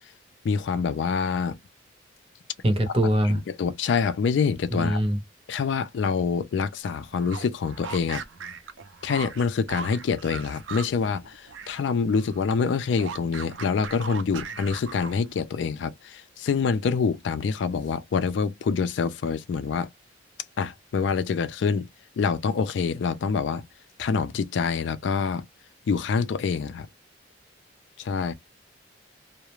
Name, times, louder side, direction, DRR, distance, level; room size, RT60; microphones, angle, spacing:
voice 1, 0.4-1.6 2.9-3.0 3.2-5.0 5.5-8.2 9.0-19.9 20.6-21.9 22.2-23.6 24.0-25.5 25.9-26.9 28.0-28.3, left 5 dB, 65° left, 0.3 m, -26 dB
voice 2, 2.6-3.4 4.7-5.2, equal, 30° right, 0.6 m, -22 dB
sound 1, 7.1-11.8 12.1-15.4, right 5 dB, 80° right, 0.5 m, -39 dB
2.3 x 2.0 x 3.0 m
head